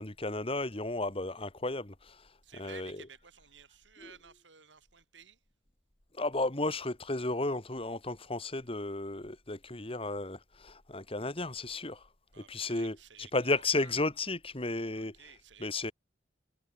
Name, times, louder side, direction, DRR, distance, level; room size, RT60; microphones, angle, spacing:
voice 1, 0.0-2.2 2.6-3.0 4.0-4.1 6.1-12.0 12.4-13.0 13.3-15.1 15.6-15.9, left 2 dB, 30° left, 2.2 m, -33 dB
voice 2, 2.4-5.4 12.3-13.5 13.8-14.0 15.0-15.8, right 6 dB, 75° right, 6.7 m, -54 dB
head